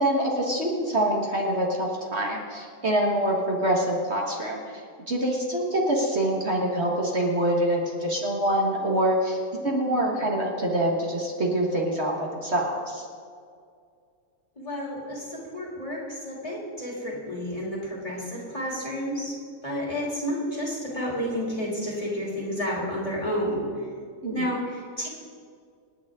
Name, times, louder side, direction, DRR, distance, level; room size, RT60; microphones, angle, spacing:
voice 1, 0.0-4.8 5.1-9.4 9.6-13.1 24.2-24.5, right 1 dB, 45° right, -2 dB, 1.8 m, -25 dB
voice 2, 9.5-10.1 14.6-19.4 19.6-23.7 24.3-25.1, equal, 20° left, -4 dB, 3.3 m, -31 dB
27.5 x 9.4 x 3.7 m, 2.2 s
omnidirectional pair, 1.6 m